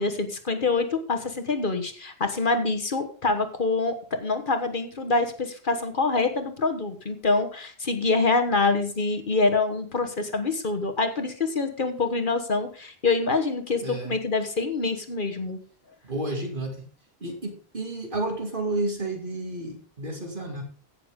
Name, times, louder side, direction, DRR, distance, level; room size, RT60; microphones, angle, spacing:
voice 1, 0.0-15.6, left 3 dB, 50° left, 7 dB, 1.5 m, -25 dB
voice 2, 13.8-14.2 16.0-16.9 17.2-20.6, right 2 dB, 50° right, 3 dB, 2.6 m, -31 dB
16.5 x 7.0 x 3.7 m, 0.42 s
omnidirectional pair, 1.1 m